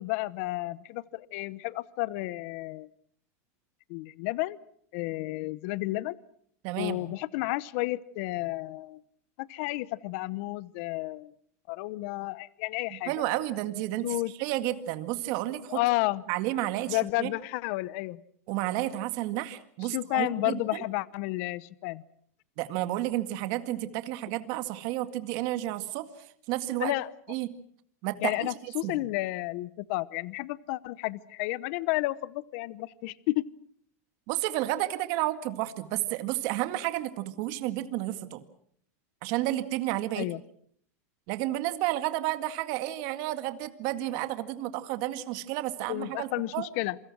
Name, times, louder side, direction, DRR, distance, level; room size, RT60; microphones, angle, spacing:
voice 1, 0.0-2.9 3.9-4.6 4.9-6.2 6.8-9.0 9.4-11.3 11.7-13.1 14.0-14.3 15.7-16.2 16.9-18.2 19.9-22.0 26.8-27.1 28.2-33.4 40.2-40.4 45.9-47.0, left 19 dB, 60° left, 19 dB, 0.9 m, -31 dB
voice 2, 6.6-7.1 13.1-15.8 16.3-17.3 18.5-20.8 22.6-26.1 26.5-26.9 27.3-27.5 28.0-28.5 28.8-29.0 34.3-38.4 39.2-40.3 41.3-46.7, right 15 dB, 55° right, 10 dB, 2.0 m, -31 dB
28.0 x 24.0 x 6.3 m, 0.63 s
supercardioid pair, 135°, 8 cm